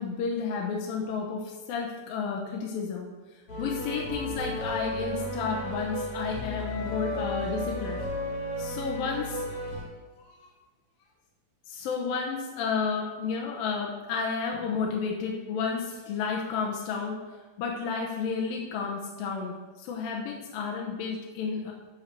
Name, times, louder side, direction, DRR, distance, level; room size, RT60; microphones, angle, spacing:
voice 1, 0.0-3.1 3.6-8.1 8.6-9.4 10.2-10.5 11.7-17.2 17.6-21.7, left 5 dB, 75° left, -1 dB, 2.5 m, -31 dB
sound 1, 3.5-9.8, left 1 dB, 45° left, 2.3 m, -34 dB
7.3 x 5.6 x 6.4 m, 1.3 s
omnidirectional pair, 4.4 m